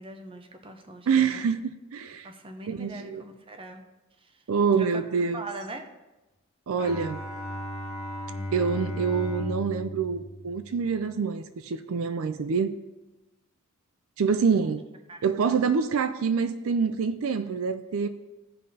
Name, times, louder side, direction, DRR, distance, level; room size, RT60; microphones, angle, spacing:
voice 1, 0.0-1.5 2.2-3.8 4.8-4.9 5.3-5.9 14.6-14.7 15.1-15.2, right 2 dB, 25° right, 0.7 m, -41 dB
voice 2, 1.1-2.3 2.7-3.2 4.5-5.5 6.7-7.2 8.5-12.8 14.2-14.8 15.2-18.1, right 5 dB, 70° right, 0.4 m, -26 dB
Bowed string instrument, 6.8-11.2, left 1 dB, 85° left, 1.3 m, -36 dB
15.5 x 5.3 x 2.8 m
head